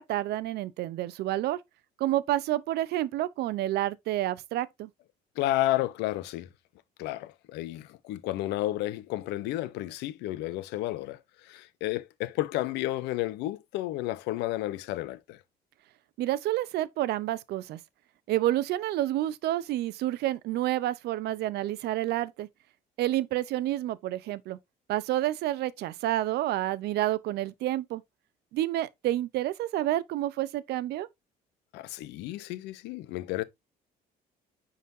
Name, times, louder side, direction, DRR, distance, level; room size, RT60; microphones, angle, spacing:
voice 1, 0.0-1.6 2.0-4.9 16.2-17.8 18.3-22.5 23.0-24.6 24.9-28.0 28.5-31.1, right 14 dB, 75° right, 0.6 m, -29 dB
voice 2, 5.4-6.5 7.0-15.4 31.7-33.4, left 15 dB, 90° left, 0.7 m, -32 dB
9.3 x 4.0 x 2.6 m
cardioid pair, 110°, 17 cm